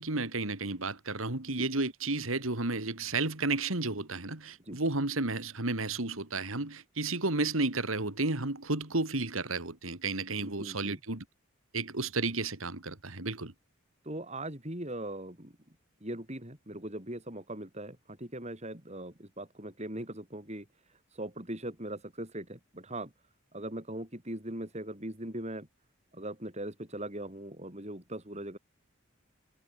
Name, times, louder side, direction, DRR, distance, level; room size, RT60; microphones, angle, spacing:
voice 1, 0.0-11.2 11.7-13.5, right 3 dB, 80° right, 2.8 m, -32 dB
voice 2, 10.4-11.0 14.0-20.7 21.1-23.1 23.5-25.7 26.1-28.6, right 1 dB, 30° right, 6.7 m, -40 dB
head